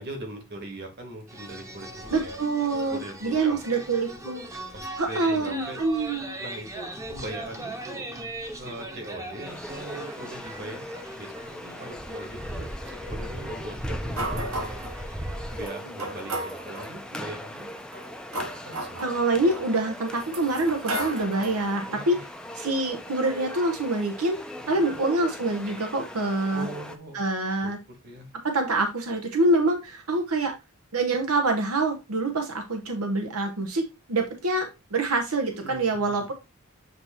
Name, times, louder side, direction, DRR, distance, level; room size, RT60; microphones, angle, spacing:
voice 1, 0.0-2.4 2.7-3.8 4.7-5.8 6.4-8.0 8.6-14.8 15.5-17.7 18.6-19.0 21.9-22.3 24.5-25.0 26.5-27.2 27.9-28.3 35.6-36.2, right 1 dB, 50° right, 3 dB, 1.9 m, -40 dB
sound 1, 1.3-15.7, right 1 dB, 15° right, 0.9 m, -38 dB
voice 2, 2.1-4.4 5.0-6.3 19.0-22.2 22.5-24.4 24.7-26.7 27.1-27.8 28.4-30.5 30.9-36.3, right 2 dB, 90° right, 4 dB, 0.9 m, -26 dB
sound 2, 9.4-27.0, left 1 dB, 5° left, 0.5 m, -41 dB
sound 3, 14.2-15.0 15.6-15.7 16.0-16.9 17.8-19.6 20.2-21.7, right 1 dB, 65° right, 1.6 m, -33 dB
7.8 x 2.8 x 4.3 m, 0.26 s
head